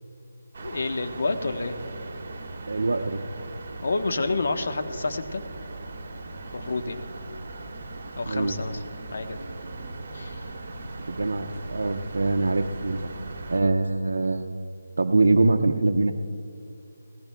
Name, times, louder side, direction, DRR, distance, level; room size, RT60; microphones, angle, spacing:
sound 1, 0.5-13.6, right 2 dB, 45° right, 1.6 m, -39 dB
voice 1, 0.6-1.8 3.8-5.4 6.5-7.0 8.2-8.8 9.1-9.4 10.1-10.4, left 3 dB, 60° left, 7 dB, 1.0 m, -29 dB
voice 2, 2.7-3.2 8.3-8.6 11.1-13.0 13.5-14.5 15.0-16.2, right 3 dB, 75° right, 3 dB, 0.6 m, -23 dB
19.5 x 17.5 x 2.2 m, 2.5 s
figure-of-eight pair, 165°, 0 cm